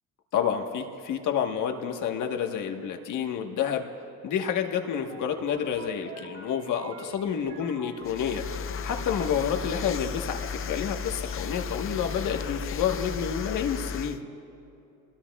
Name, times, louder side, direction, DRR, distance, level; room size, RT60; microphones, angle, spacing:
voice 1, 0.3-3.9 4.2-14.3, left 8 dB, 70° left, 4 dB, 1.4 m, -29 dB
sound 1, 4.6-8.8, right 4 dB, 65° right, 2.4 m, -47 dB
sound 2, 8.0-14.2, left 6 dB, 40° left, 0.6 m, -34 dB
28.5 x 21.0 x 2.4 m, 2.7 s
cardioid pair, 120°, 32 cm